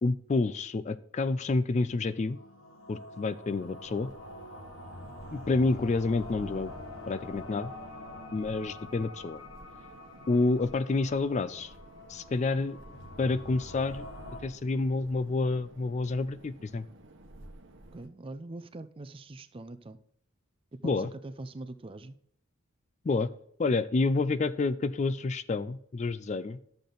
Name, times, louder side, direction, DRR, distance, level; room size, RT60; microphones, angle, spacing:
voice 1, 0.0-2.4 2.9-4.1 5.3-6.7 7.1-7.7 8.3-9.4 10.3-11.7 12.1-12.8 13.2-14.1 14.4-16.9 20.8-21.1 23.0-23.3 23.6-26.6, left 3 dB, 35° left, 15 dB, 0.3 m, -29 dB
sound 1, 2.2-14.4, left 1 dB, 70° left, 1.9 m, -46 dB
sound 2, 3.6-18.1, right 1 dB, 60° right, 1.1 m, -53 dB
voice 2, 17.9-20.0 20.8-22.2, right 2 dB, 25° right, 12 dB, 0.5 m, -42 dB
12.0 x 6.8 x 3.9 m, 0.68 s
head